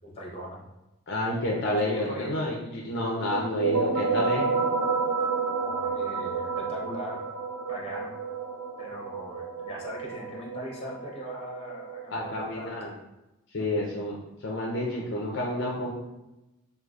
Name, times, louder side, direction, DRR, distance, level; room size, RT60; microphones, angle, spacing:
voice 1, 0.0-0.6 1.8-2.4 5.6-7.2 7.7-8.1 8.8-12.9, equal, 30° left, -3 dB, 0.8 m, -40 dB
voice 2, 1.1-4.5 12.1-12.9 13.5-15.9, left 1 dB, 55° left, -2 dB, 0.5 m, -29 dB
sound 1, 3.3-12.7, right 4 dB, 85° right, 0.5 m, -30 dB
4.7 x 2.4 x 2.4 m, 0.96 s
head